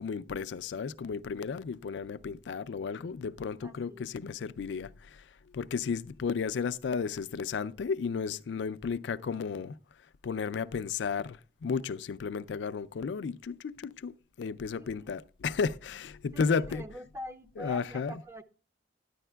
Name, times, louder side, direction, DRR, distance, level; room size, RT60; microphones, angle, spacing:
voice 1, 0.0-5.2 5.5-9.8 10.2-16.8 17.6-18.2, left 5 dB, 80° left, 0.4 m, -33 dB
voice 2, 3.6-4.1 14.7-15.1 16.3-18.4, equal, 15° right, 0.5 m, -44 dB
13.0 x 10.0 x 2.2 m
head